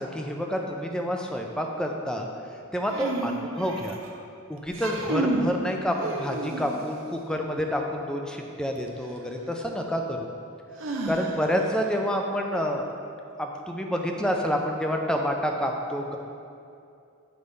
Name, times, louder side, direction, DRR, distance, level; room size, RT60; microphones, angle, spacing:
voice 1, 0.0-2.3 2.7-4.0 4.5-10.3 11.0-12.8 13.4-16.2, equal, 5° left, 2 dB, 0.4 m, -28 dB
sound 1, 2.9-4.1 4.6-5.5 6.0-6.9 8.9-9.0 10.8-11.6, right 2 dB, 65° right, 0.7 m, -30 dB
8.1 x 3.3 x 5.3 m, 2.5 s
head